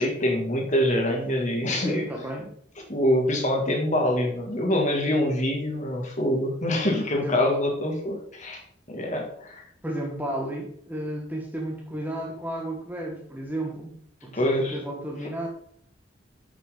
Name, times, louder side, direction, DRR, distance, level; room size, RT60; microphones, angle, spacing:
voice 1, 0.0-2.0 2.9-8.6 8.9-9.6 14.3-14.8, left 1 dB, 40° left, 0 dB, 2.2 m, -25 dB
voice 2, 1.8-2.5 7.2-7.4 9.8-15.5, right 1 dB, 10° right, 0 dB, 1.4 m, -33 dB
8.7 x 6.6 x 3.9 m, 0.63 s
head